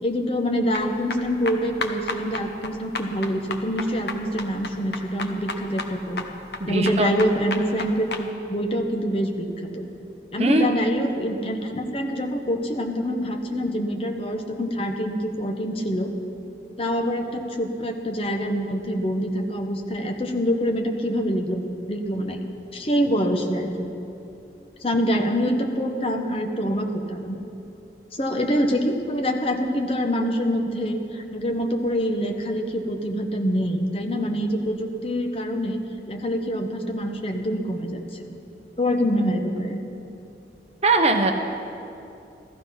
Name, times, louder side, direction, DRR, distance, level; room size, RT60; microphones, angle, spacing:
voice 1, 0.0-6.2 6.7-9.9 10.3-16.1 16.8-22.4 22.7-23.9 24.8-27.4 28.1-35.8 36.1-38.3 38.8-39.8, equal, 35° left, 3 dB, 1.1 m, -25 dB
sound 1, 0.7-8.2, left 3 dB, 75° left, 1.0 m, -33 dB
voice 2, 6.6-7.1 10.4-10.7 40.8-41.3, right 2 dB, 35° right, 4 dB, 0.9 m, -20 dB
14.5 x 14.0 x 5.7 m, 2.8 s
head